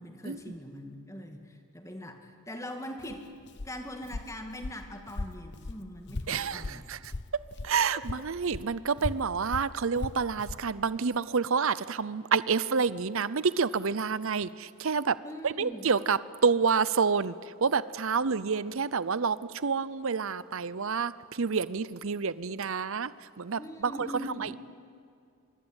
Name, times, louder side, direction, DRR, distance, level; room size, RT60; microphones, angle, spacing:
voice 1, 0.0-3.3 3.6-6.9 7.9-8.1 15.2-15.9 23.6-24.6, equal, 15° left, 5 dB, 2.3 m, -42 dB
Walk footsteps, 3.0-7.8 8.0-10.7, left 2 dB, 50° left, 0.8 m, -38 dB
voice 2, 6.3-7.0 7.6-15.2 15.4-17.3 17.6-23.1 23.4-24.6, right 5 dB, 60° right, 17 dB, 0.7 m, -28 dB
25.0 x 22.5 x 9.0 m, 2.4 s
head